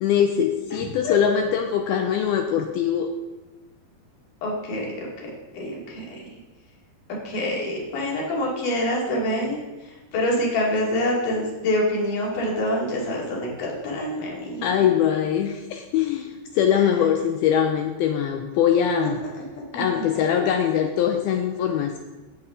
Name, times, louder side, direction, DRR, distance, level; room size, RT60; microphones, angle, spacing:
voice 1, 0.0-3.1 14.6-19.2 19.7-22.0, left 8 dB, 85° left, 4 dB, 2.3 m, -22 dB
voice 2, 0.7-1.2 4.4-6.3 7.2-9.6 10.1-14.7 16.7-16.8 19.0-19.3 19.7-20.0, left 1 dB, 55° left, -3 dB, 3.6 m, -26 dB
16.5 x 7.4 x 3.7 m, 1.1 s
omnidirectional pair, 4.9 m